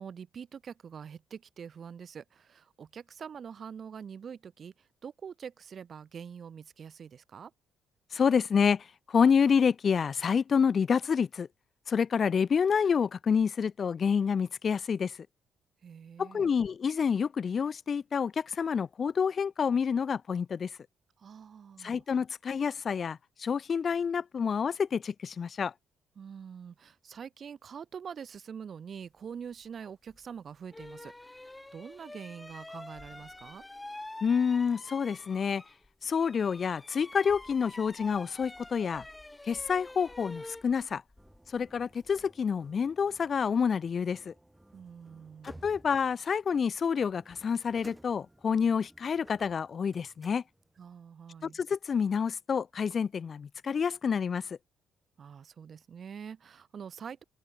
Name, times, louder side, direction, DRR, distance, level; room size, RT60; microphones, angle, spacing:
voice 1, 0.0-7.5 15.8-16.5 21.2-22.0 26.2-33.6 44.7-45.7 50.8-51.6 55.2-57.2, right 7 dB, 50° right, 6.3 m, -45 dB
voice 2, 8.1-11.5 11.9-15.1 16.2-20.7 21.8-25.7 34.2-35.6 36.0-39.0 39.5-41.0 41.5-44.3 45.4-50.4 51.4-54.6, left 6 dB, 50° left, 0.6 m, -28 dB
sound 1, 30.1-30.2 30.7-35.9 36.1-42.3, left 2 dB, 15° left, 1.4 m, -47 dB
sound 2, 41.2-50.9, right 1 dB, 10° right, 7.7 m, -57 dB
open air
hypercardioid pair, 50°, 0 cm